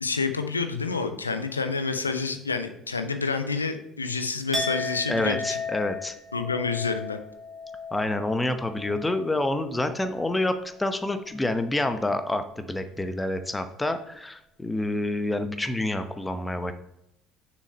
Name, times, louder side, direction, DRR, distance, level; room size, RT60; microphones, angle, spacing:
voice 1, 0.0-5.6 6.3-7.2, left 4 dB, 85° left, 8 dB, 0.5 m, -28 dB
Chink clink, 4.5-10.5 10.8-11.2, left 3 dB, 25° right, 2.2 m, -36 dB
voice 2, 5.1-6.1 7.9-16.7, left 2 dB, 15° left, 9 dB, 0.9 m, -28 dB
6.5 x 6.3 x 4.2 m, 0.81 s
figure-of-eight pair, 60°, 0 cm